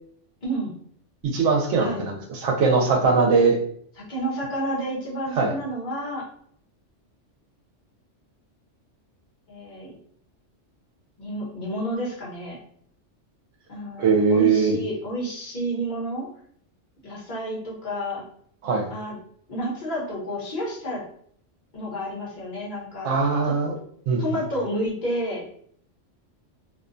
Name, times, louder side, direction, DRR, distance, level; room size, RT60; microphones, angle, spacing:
voice 1, 0.4-0.7 1.8-2.0 4.0-6.2 9.5-9.9 11.2-12.6 13.7-16.3 17.0-18.2 18.9-19.2 19.5-21.0 21.7-23.1 23.4-23.5 24.2-25.4, right 1 dB, 45° left, -5 dB, 1.0 m, -30 dB
voice 2, 1.2-3.6 5.4-5.5 14.0-14.8 18.6-18.9 23.0-23.7 24.1-24.2, right 4 dB, 85° right, 2 dB, 0.9 m, -21 dB
2.5 x 2.1 x 2.5 m, 0.62 s
omnidirectional pair, 1.2 m